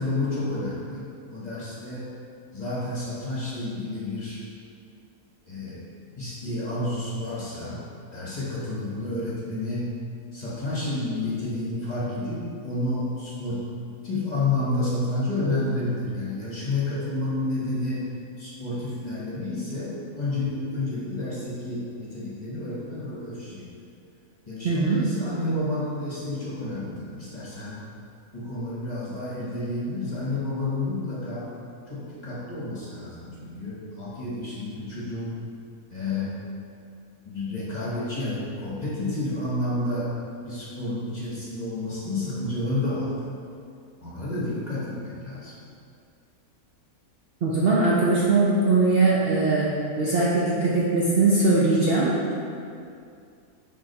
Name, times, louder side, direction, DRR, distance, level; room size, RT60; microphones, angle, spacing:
voice 1, 0.0-2.1 2.5-4.4 5.5-5.8 6.2-7.8 8.1-9.9 10.3-13.6 14.0-18.1 18.4-23.6 24.5-27.8 28.3-31.5 31.9-35.4 35.9-36.3 37.2-40.1 40.4-43.3 44.0-45.6, left 2 dB, 30° left, -8 dB, 1.3 m, -30 dB
voice 2, 24.6-25.0 47.4-52.1, right 3 dB, 50° right, -7 dB, 0.8 m, -21 dB
4.9 x 3.8 x 5.3 m, 2.4 s
omnidirectional pair, 1.6 m